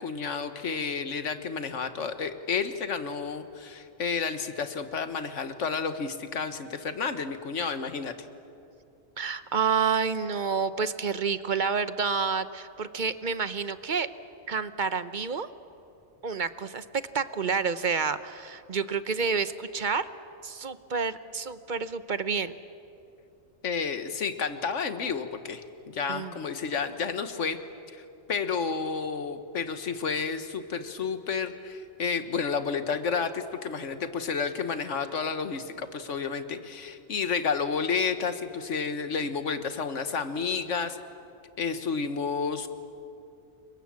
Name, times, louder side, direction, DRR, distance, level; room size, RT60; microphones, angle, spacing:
voice 1, 0.0-8.1 23.6-27.6 27.9-41.0 41.6-42.7, left 5 dB, 85° left, 10 dB, 1.6 m, -31 dB
voice 2, 9.2-14.1 14.5-15.5 16.2-16.8 17.1-20.1 20.4-22.5 26.1-26.3, right 5 dB, 45° right, 13 dB, 0.9 m, -29 dB
29.5 x 24.0 x 7.5 m, 2.7 s
omnidirectional pair, 1.2 m